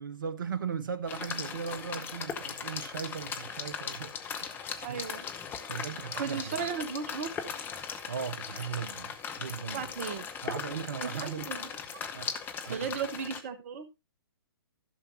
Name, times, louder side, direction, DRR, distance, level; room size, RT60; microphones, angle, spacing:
voice 1, 0.0-4.5 4.9-5.0 5.7-6.7 8.1-9.9 10.4-11.5 12.1-12.3 12.6-12.9, right 7 dB, 60° right, 0.9 m, -38 dB
sound 1, 1.1-13.4, left 7 dB, 15° left, 1.1 m, -39 dB
voice 2, 4.8-5.3 6.1-7.3 9.7-10.3 11.0-11.7 12.7-13.9, right 6 dB, 40° right, 1.2 m, -35 dB
15.0 x 6.9 x 2.7 m
figure-of-eight pair, 120°, 12 cm